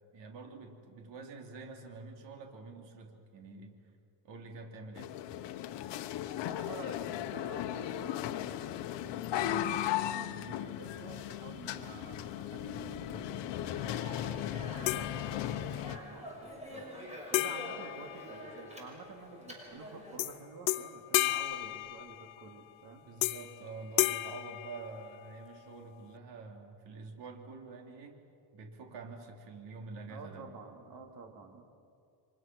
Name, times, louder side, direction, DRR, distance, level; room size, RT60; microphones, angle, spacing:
voice 1, 0.1-3.8 4.2-5.1 23.1-28.2 28.5-30.5, right 3 dB, 65° right, 3 dB, 3.5 m, -47 dB
sound 1, 5.0-16.0, left 12 dB, 65° left, 1.2 m, -36 dB
voice 2, 6.4-13.9 14.2-23.1 30.1-31.6, right 4 dB, 50° right, 3 dB, 3.2 m, -50 dB
Speech, 13.7-20.2, equal, 15° right, 6.2 m, -47 dB
sound 2, 14.9-15.8 17.3-18.9 20.2-20.4 20.7-22.5 23.2-23.6 24.0-25.4, left 18 dB, 85° left, 0.9 m, -33 dB
29.0 x 24.5 x 6.3 m, 2.4 s
cardioid pair, 140°, 46 cm